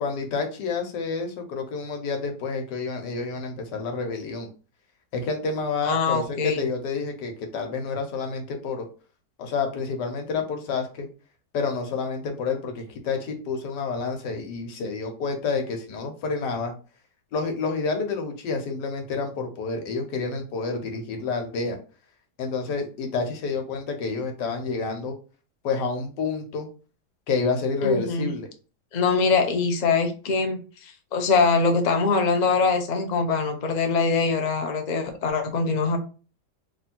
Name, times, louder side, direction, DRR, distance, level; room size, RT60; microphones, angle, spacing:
voice 1, 0.0-4.5 5.1-8.9 9.4-11.1 11.5-16.7 17.3-21.8 22.4-25.2 25.6-26.7 27.3-28.5, left 4 dB, 85° left, 4 dB, 1.5 m, -29 dB
voice 2, 5.8-6.6 27.8-28.3 28.9-36.0, left 4 dB, 65° left, 5 dB, 0.4 m, -23 dB
3.2 x 2.7 x 4.3 m, 0.36 s
omnidirectional pair, 1.8 m